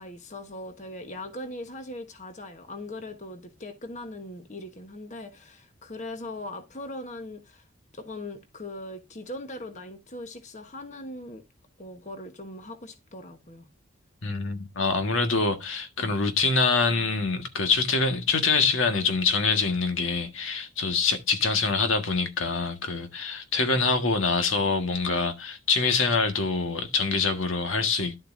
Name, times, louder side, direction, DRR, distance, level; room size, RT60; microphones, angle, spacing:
voice 1, 0.0-7.6 7.9-11.4 11.8-13.7, left 1 dB, 35° left, 1.3 m, -40 dB
voice 2, 14.2-28.2, left 4 dB, 80° left, 1.6 m, -25 dB
11.5 x 7.8 x 2.6 m
head